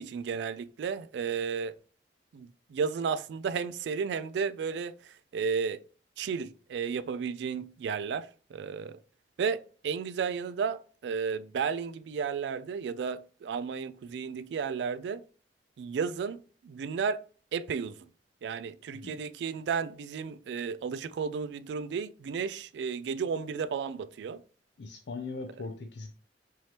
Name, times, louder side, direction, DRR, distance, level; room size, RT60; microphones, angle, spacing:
voice 1, 0.0-1.7 2.3-5.8 6.2-9.0 9.4-15.2 15.8-17.2 17.5-18.1 18.4-24.4, right 6 dB, 70° right, 0.3 m, -33 dB
voice 2, 24.8-26.1, left 3 dB, 70° left, 0.5 m, -40 dB
4.7 x 2.9 x 2.9 m
head